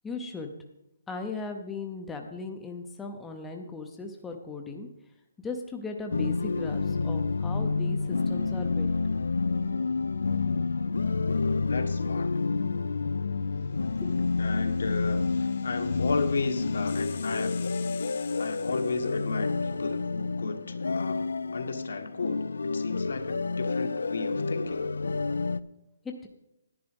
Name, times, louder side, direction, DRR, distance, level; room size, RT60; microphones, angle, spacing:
voice 1, 0.0-0.5 1.1-4.9 5.4-9.0 14.0-14.3, left 3 dB, 5° left, 3 dB, 0.5 m, -37 dB
sound 1, 6.1-25.6, left 4 dB, 90° left, 0.4 m, -29 dB
voice 2, 11.7-12.4 14.4-17.6 18.4-21.2 21.5-24.9, left 3 dB, 70° left, 6 dB, 1.4 m, -34 dB
sound 2, 13.7-19.7, left 7 dB, 40° left, 1.1 m, -49 dB
10.5 x 10.0 x 5.2 m, 0.87 s
hypercardioid pair, 175°, 0 cm